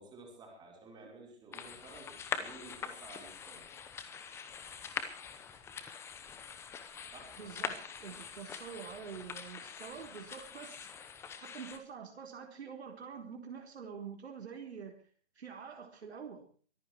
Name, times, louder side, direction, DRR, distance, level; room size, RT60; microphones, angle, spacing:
voice 1, 0.0-3.6 7.1-7.4, right 2 dB, 10° right, -1 dB, 5.4 m, -53 dB
sound 1, 1.5-11.8, left 6 dB, 5° left, 0.9 m, -44 dB
voice 2, 7.4-10.9 11.4-15.0 15.4-16.4, right 7 dB, 70° right, 3 dB, 4.4 m, -46 dB
23.5 x 10.5 x 4.7 m, 0.43 s
hypercardioid pair, 150°, 34 cm